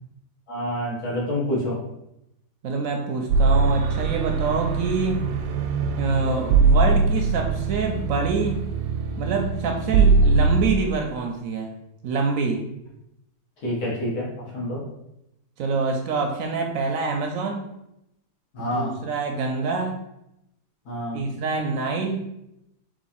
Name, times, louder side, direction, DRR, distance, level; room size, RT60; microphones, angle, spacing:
voice 1, 0.5-1.8 13.6-14.8 18.5-18.9 20.9-21.2, left 1 dB, 70° left, -4 dB, 1.8 m, -27 dB
voice 2, 2.6-5.2 6.0-8.6 9.2-11.8 12.0-12.7 15.6-17.7 18.6-20.0 21.1-22.3, right 4 dB, 70° right, 3 dB, 0.9 m, -26 dB
sound 1, 3.3-10.6, right 4 dB, 90° right, 1.2 m, -21 dB
3.8 x 3.0 x 4.1 m, 0.85 s
omnidirectional pair, 1.7 m